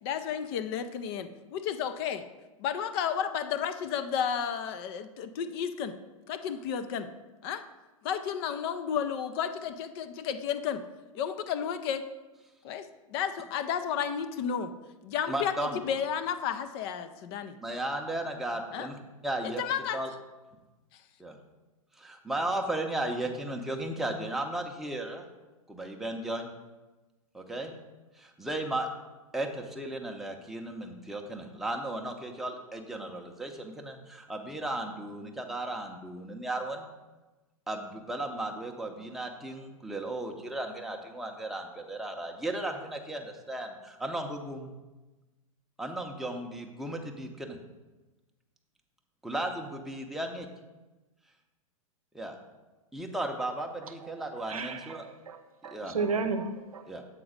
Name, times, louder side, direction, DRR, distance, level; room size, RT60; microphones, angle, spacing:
voice 1, 0.0-2.2 2.6-5.9 6.3-7.1 7.4-7.6 8.0-10.8 11.1-12.0 12.6-14.7 15.0-17.6 18.7-18.9 19.6-20.0, left 8 dB, 45° left, 10 dB, 0.5 m, -32 dB
voice 2, 15.3-15.8 17.6-19.0 19.2-19.6 19.9-20.1 21.2-21.4 21.9-25.3 25.7-26.5 27.3-27.7 28.1-28.9 29.3-36.9 37.7-44.7 45.8-47.6 49.2-50.5 52.1-52.4 52.9-55.0 55.7-56.0 56.9-57.0, right 1 dB, ahead, 2 dB, 0.7 m, -35 dB
voice 3, 54.5-55.4 55.6-56.8, right 4 dB, 85° right, 8 dB, 0.6 m, -33 dB
7.4 x 3.8 x 5.0 m, 1.1 s
hypercardioid pair, 110°, 18 cm